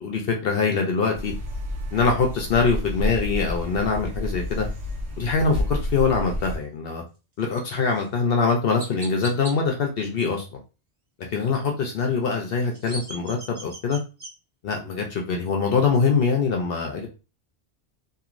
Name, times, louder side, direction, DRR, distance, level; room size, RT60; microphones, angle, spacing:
voice 1, 0.0-1.3 1.9-4.7 5.2-7.0 7.4-10.6 11.3-14.0 14.6-17.1, left 4 dB, 65° left, 1 dB, 0.8 m, -23 dB
sound 1, 1.1-6.6, left 1 dB, 80° right, 1.0 m, -30 dB
Chirp tweet, 7.9-8.0 8.8-9.5 12.5-14.3, right 2 dB, 30° right, 0.9 m, -38 dB
2.9 x 2.7 x 2.5 m, 0.31 s
omnidirectional pair, 1.1 m